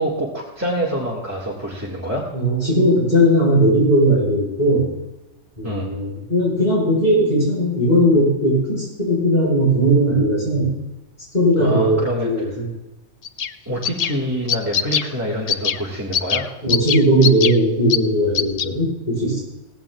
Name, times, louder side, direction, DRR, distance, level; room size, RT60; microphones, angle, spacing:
voice 1, 0.0-2.3 5.6-5.9 11.6-12.5 13.7-16.5, equal, 15° right, -4 dB, 1.9 m, -26 dB
voice 2, 2.3-4.9 5.6-10.7 11.3-12.7 16.6-19.4, equal, 35° left, -6 dB, 5.3 m, -18 dB
sound 1, 13.2-13.5 13.8-14.1 14.5-15.1 15.5-15.8 16.1-16.4 16.7-17.5 17.9-18.0 18.3-18.6, left 8 dB, 75° left, 0.3 m, -21 dB
17.5 x 16.0 x 2.4 m, 1.0 s
omnidirectional pair, 1.2 m